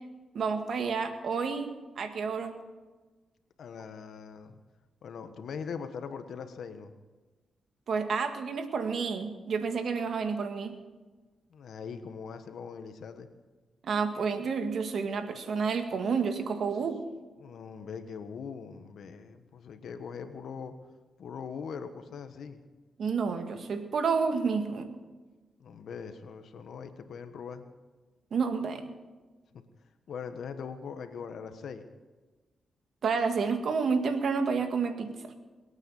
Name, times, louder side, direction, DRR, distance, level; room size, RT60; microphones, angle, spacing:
voice 1, 0.3-2.6 7.9-10.8 13.8-17.0 23.0-24.9 28.3-28.8 33.0-35.3, right 5 dB, 70° right, 7 dB, 1.8 m, -30 dB
voice 2, 3.6-4.6 5.0-6.9 11.5-13.3 16.7-16.9 17.4-20.7 21.2-22.6 25.6-27.6 29.5-29.6 30.1-31.9, left 6 dB, 75° left, 9 dB, 1.4 m, -41 dB
22.5 x 9.1 x 7.2 m, 1.3 s
cardioid pair, 70°, 0 cm